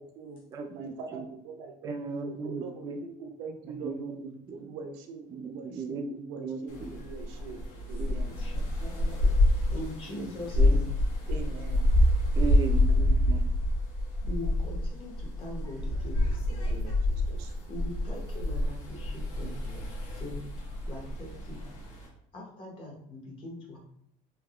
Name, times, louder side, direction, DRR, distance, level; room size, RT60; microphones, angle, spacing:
voice 1, 0.0-0.4 0.7-4.1 4.5-7.6 7.9-8.3 10.1-10.3 11.3-11.8 16.7-17.5 19.4-19.8, right 4 dB, 80° right, 5 dB, 0.6 m, -43 dB
voice 2, 0.5-1.2 1.8-3.0 3.8-4.2 4.5-4.6 5.3-6.1 6.4-6.9 8.0-8.2 10.6-10.8 12.4-13.4, right 4 dB, 25° right, 5 dB, 0.3 m, -36 dB
sound 1, 6.7-22.1, left 1 dB, 75° left, 1.0 m, -27 dB
voice 3, 8.0-9.2 9.7-10.9 14.2-16.8 17.7-19.5 19.9-20.5 20.8-21.6 22.3-23.8, left 1 dB, 35° left, -1 dB, 0.8 m, -42 dB
3.3 x 2.7 x 2.4 m, 0.73 s
cardioid pair, 170°, 15 cm